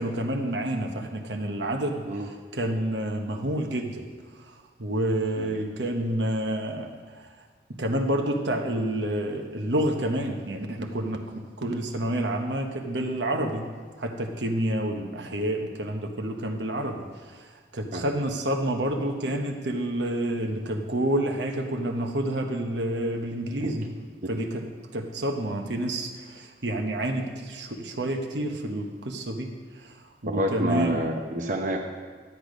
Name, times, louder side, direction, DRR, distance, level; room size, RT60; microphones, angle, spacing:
voice 1, 0.0-2.1 2.5-4.0 4.5-7.2 7.7-13.7 14.0-17.5 17.7-23.9 24.3-24.7 24.9-30.0 30.2-31.1, right 1 dB, 75° right, 4 dB, 1.1 m, -29 dB
voice 2, 30.3-31.8, equal, 45° right, 1 dB, 0.8 m, -28 dB
12.5 x 8.4 x 5.1 m, 1.5 s
head